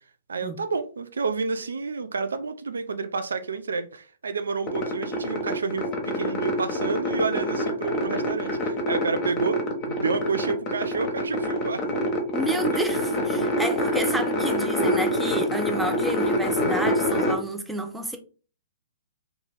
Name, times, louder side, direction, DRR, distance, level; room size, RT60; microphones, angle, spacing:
voice 1, 0.3-9.6 9.9-11.8, right 4 dB, 70° right, 0.4 m, -29 dB
sound 1, 4.7-17.3, equal, 30° left, 0.9 m, -26 dB
voice 2, 12.3-18.2, right 1 dB, 5° right, 0.5 m, -30 dB
2.8 x 2.8 x 3.6 m
figure-of-eight pair, 115°, 0 cm